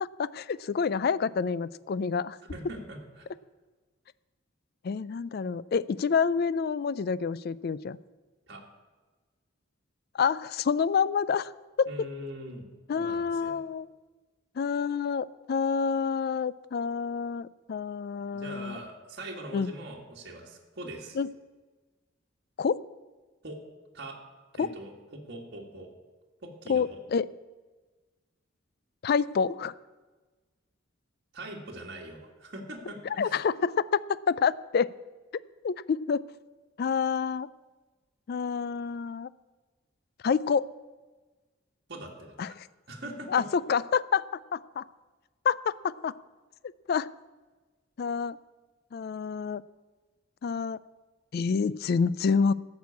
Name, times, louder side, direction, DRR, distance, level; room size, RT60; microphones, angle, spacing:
voice 1, 0.0-2.4 4.8-8.0 10.1-11.5 11.8-11.9 12.9-13.9 14.6-18.8 19.5-19.7 21.2-21.3 22.6-22.8 24.6-24.7 26.7-27.3 29.0-29.7 33.2-34.9 35.6-36.2 36.8-37.5 38.3-39.3 40.2-40.7 42.4-42.7 43.3-44.3 44.5-44.8 45.4-46.1 46.9-47.1 48.0-48.4 48.9-49.6 50.4-50.8 51.3-52.5, left 6 dB, 50° left, 19 dB, 0.3 m, -28 dB
voice 2, 2.5-3.3 8.5-8.6 11.9-12.7 12.9-13.6 18.3-21.2 23.4-23.6 23.9-24.2 24.5-25.9 26.4-27.0 31.3-33.4 41.9-42.6 42.9-43.5, right 1 dB, 55° right, -1 dB, 1.8 m, -42 dB
14.0 x 6.3 x 8.4 m, 1.3 s
head